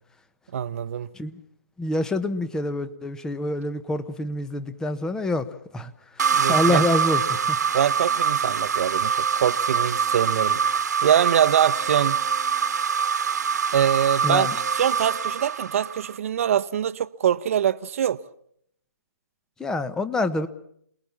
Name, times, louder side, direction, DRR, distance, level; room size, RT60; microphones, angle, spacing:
voice 1, 0.5-1.1 6.3-6.9 7.7-10.6 11.0-12.2 13.7-14.5 14.7-18.2, right 9 dB, 50° right, 1.0 m, -23 dB
voice 2, 1.8-5.5 5.7-7.6 14.2-14.5 19.6-20.5, left 1 dB, 5° left, 1.1 m, -26 dB
sound 1, 6.2-16.2, right 6 dB, 65° right, 1.6 m, -24 dB
28.0 x 20.5 x 7.3 m
hypercardioid pair, 145°, 10 cm